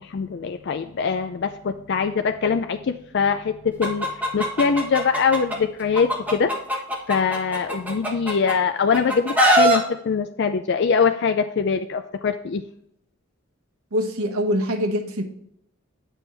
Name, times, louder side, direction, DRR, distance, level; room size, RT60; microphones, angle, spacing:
voice 1, 0.1-6.5 7.1-12.6, left 5 dB, 50° left, 7 dB, 0.4 m, -23 dB
Chicken rooster, 3.8-5.6 5.9-8.5 8.9-9.8, right 1 dB, 5° right, 1.3 m, -21 dB
voice 2, 13.9-15.2, equal, 85° right, 3 dB, 1.2 m, -24 dB
8.9 x 6.0 x 3.3 m, 0.75 s
head